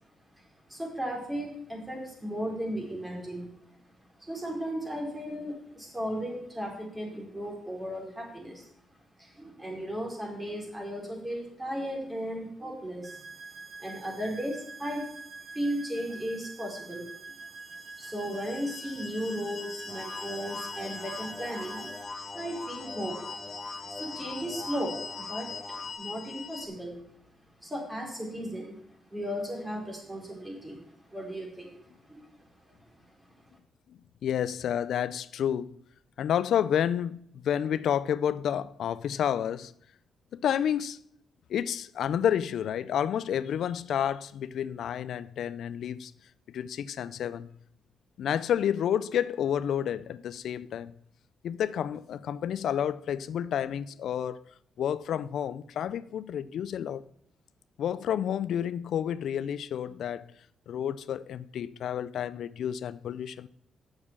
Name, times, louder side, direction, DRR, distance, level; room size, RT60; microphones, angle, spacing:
voice 1, 0.7-3.5 4.2-8.7 9.2-13.2 13.5-15.0 15.5-17.5 18.0-21.9 22.3-23.2 23.9-27.0 27.6-28.8 29.1-32.3 32.7-32.8, equal, 15° right, 3.9 m, -36 dB
sound 1, 13.0-22.0, right 4 dB, 45° right, 1.4 m, -45 dB
sound 2, 17.7-26.7, left 4 dB, 55° left, 1.2 m, -43 dB
sound 3, 19.9-25.9, left 3 dB, 30° left, 1.0 m, -43 dB
voice 2, 33.9-35.7 36.2-39.7 40.3-41.0 41.5-46.1 46.5-47.5 48.2-50.9 51.4-54.4 54.8-57.0 57.8-60.3 60.7-63.5, left 9 dB, 75° left, 0.4 m, -30 dB
7.3 x 6.4 x 7.3 m
cardioid pair, 70°, 0 cm